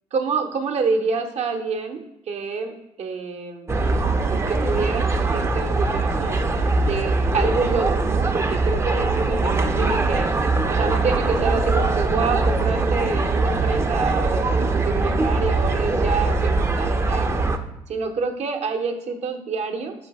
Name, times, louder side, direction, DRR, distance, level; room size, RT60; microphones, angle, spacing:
voice 1, 0.1-2.0 2.3-2.7 3.0-3.7 4.3-6.4 6.8-10.3 10.7-17.5 17.9-19.9, right 4 dB, 55° right, 4 dB, 0.6 m, -27 dB
sound 1, 3.7-17.6, right 3 dB, 20° right, 0.4 m, -22 dB
3.8 x 3.2 x 4.0 m, 0.89 s
supercardioid pair, 65°, 14 cm